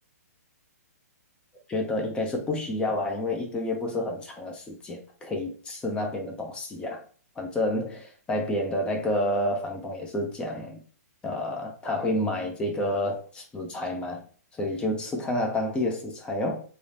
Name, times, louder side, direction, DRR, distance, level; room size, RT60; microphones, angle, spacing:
voice 1, 1.7-7.0 7.4-10.8 11.2-14.2 14.6-16.6, left 1 dB, 10° left, 0.6 m, -29 dB
3.0 x 2.0 x 2.6 m
hypercardioid pair, 135°, 9 cm